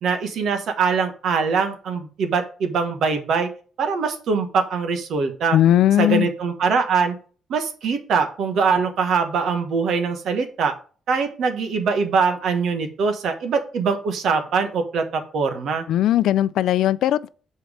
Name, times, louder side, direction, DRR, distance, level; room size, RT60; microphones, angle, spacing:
voice 1, 0.0-3.5 3.8-5.6 6.0-7.2 7.5-10.7 11.1-15.8, right 5 dB, 70° right, 1.4 m, -22 dB
voice 2, 5.5-6.3 15.9-17.3, left 12 dB, 80° left, 0.4 m, -18 dB
7.2 x 4.5 x 5.1 m
cardioid pair, 125°, 0 cm